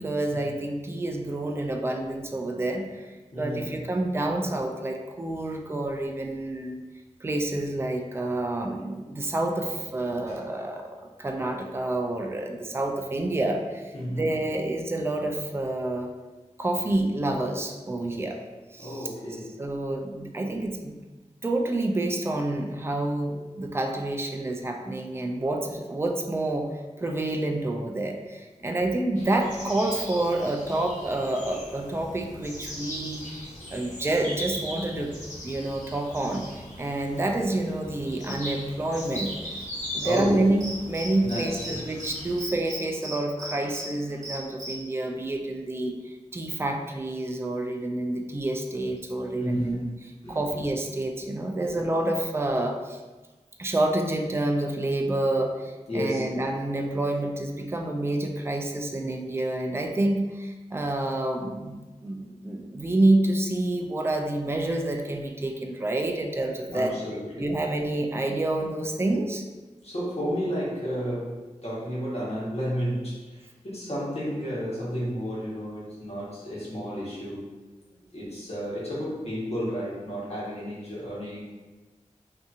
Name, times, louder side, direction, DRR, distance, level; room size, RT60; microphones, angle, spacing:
voice 1, 0.0-6.8 7.2-10.9 11.2-16.1 16.6-18.4 18.7-19.1 19.6-20.9 21.4-26.7 27.0-35.1 35.4-39.3 39.9-53.0 53.6-67.0 67.4-69.4, right 1 dB, 20° right, 3 dB, 0.3 m, -28 dB
voice 2, 3.3-3.7 10.1-10.4 13.9-14.3 18.8-19.6 40.0-40.5 41.2-42.2 42.4-42.5 43.4-43.7 44.0-44.3 49.3-49.8 50.2-50.5 51.6-51.8 55.9-56.3 66.6-67.5 69.8-77.5 78.1-81.4, equal, 55° left, -8 dB, 1.1 m, -32 dB
sound 1, 29.2-42.4, equal, 70° left, 0.8 m, -39 dB
Cricket, 40.6-41.7 42.0-42.1 42.4-43.9 44.2-44.7, right 1 dB, 75° right, 0.7 m, -36 dB
2.7 x 2.6 x 2.4 m, 1.2 s
wide cardioid pair, 55°, 13 cm